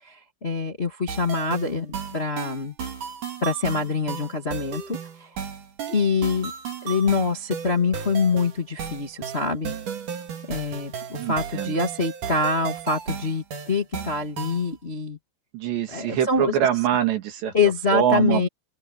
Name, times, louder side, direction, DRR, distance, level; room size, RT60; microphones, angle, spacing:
voice 1, 0.0-2.7 3.4-4.8 5.2-5.3 5.9-6.5 6.8-9.7 10.5-15.2 15.9-16.6 17.5-18.5, left 4 dB, 75° left, 0.5 m, -25 dB
sound 1, 1.1-14.7, right 7 dB, 45° right, 3.6 m, -34 dB
voice 2, 11.2-11.7 15.5-17.5 17.9-18.4, right 10 dB, 60° right, 4.3 m, -24 dB
open air
omnidirectional pair, 5.8 m